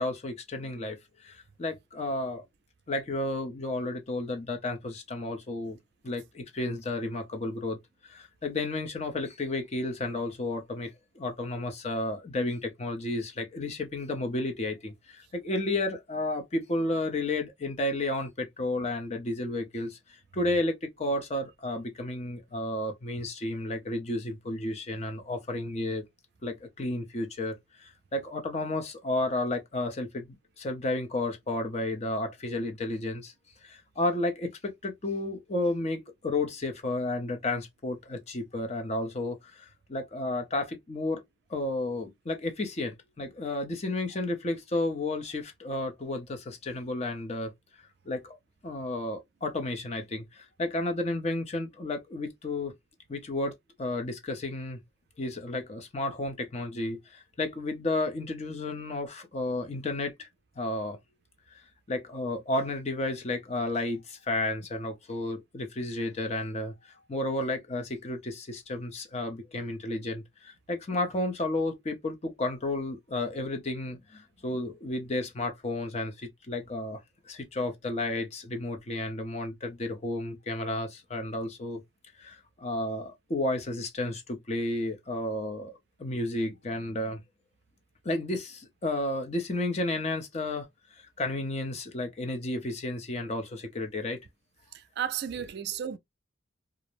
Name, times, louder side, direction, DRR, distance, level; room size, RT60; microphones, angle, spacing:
voice 1, 0.0-2.4 2.9-5.8 6.0-20.0 20.3-26.0 26.4-33.3 33.6-41.2 41.5-47.5 48.1-48.4 48.6-52.7 53.1-53.5 53.8-54.8 55.2-60.3 60.6-61.0 61.5-61.6 61.9-77.0 77.3-81.8 82.2-85.7 86.0-87.2 88.0-90.7 90.9-94.2, left 2 dB, 35° left, 0.5 m, -32 dB
voice 2, 94.7-96.0, right 9 dB, 55° right, 0.3 m, -33 dB
2.4 x 2.0 x 2.9 m
head